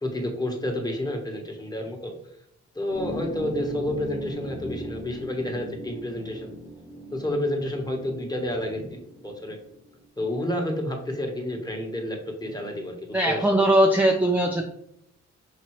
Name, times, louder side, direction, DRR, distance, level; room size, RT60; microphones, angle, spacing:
voice 1, 0.0-2.1 2.7-6.5 7.1-9.6 10.2-13.4, left 1 dB, 15° left, 1 dB, 1.3 m, -30 dB
sound 1, 2.9-9.9, equal, 25° right, 1.1 m, -39 dB
voice 2, 13.1-14.6, right 1 dB, 5° right, 1 dB, 0.6 m, -20 dB
5.8 x 2.7 x 3.1 m, 0.74 s
cardioid pair, 70°, 29 cm